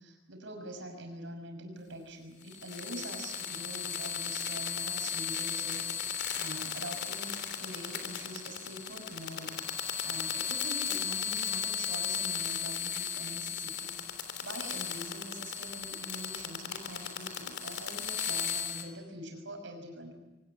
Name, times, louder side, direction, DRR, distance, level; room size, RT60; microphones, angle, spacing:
voice 1, 0.0-20.1, right 1 dB, 65° right, 4 dB, 6.2 m, -44 dB
sound 1, 2.4-18.8, left 8 dB, 55° left, 3.4 m, -36 dB
23.5 x 19.0 x 9.3 m, 1.0 s
head